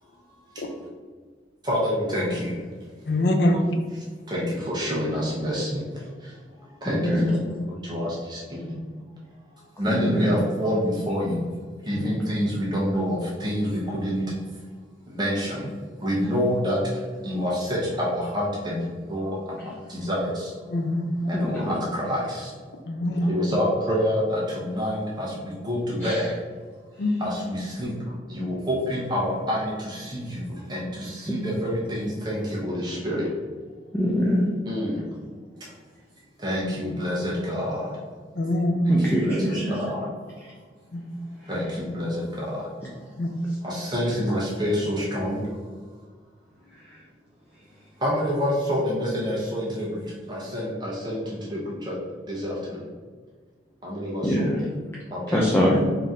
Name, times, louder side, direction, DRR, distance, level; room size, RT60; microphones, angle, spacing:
voice 1, 1.6-2.5 4.3-5.8 6.8-7.5 7.9-8.6 9.8-11.4 11.8-14.2 15.1-15.7 16.0-16.8 17.2-20.5 21.3-22.5 23.3-26.3 27.2-27.9 28.3-30.4 30.7-33.2 34.7-35.0 36.4-37.9 39.2-40.0 41.5-42.6 43.6-45.4 48.0-50.0 50.3-51.9 52.3-52.5 53.8-54.5 55.1-55.4, equal, 25° right, -5 dB, 0.8 m, -27 dB
voice 2, 3.1-3.6 11.9-12.0 20.7-21.0 22.8-23.3 27.0-27.1 38.4-38.9 40.9-41.0 43.2-43.3, left 1 dB, 75° left, 5 dB, 0.6 m, -23 dB
voice 3, 6.9-7.3 9.9-10.3 19.6-19.7 21.3-21.8 26.0-26.3 31.3-31.4 33.9-34.4 38.9-39.8 46.9-47.0 54.2-54.6 55.3-55.8, equal, 15° left, -5 dB, 0.5 m, -23 dB
3.8 x 2.8 x 3.6 m, 1.5 s
head